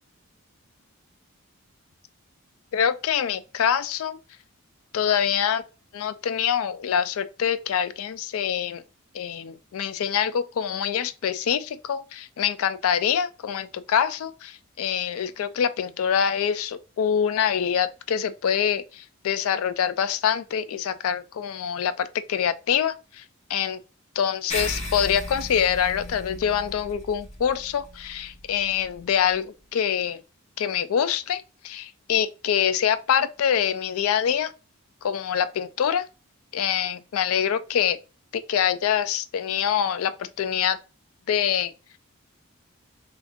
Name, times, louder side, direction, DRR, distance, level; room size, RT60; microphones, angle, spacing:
voice 1, 2.7-4.2 4.9-5.6 5.9-8.8 9.1-23.8 24.2-30.2 30.6-34.5 35.0-36.1 36.5-38.0 38.3-40.8 41.3-41.7, left 8 dB, 75° left, 0.3 m, -25 dB
sound 1, 24.5-29.3, left 2 dB, 30° left, 0.8 m, -36 dB
3.5 x 2.4 x 3.5 m
head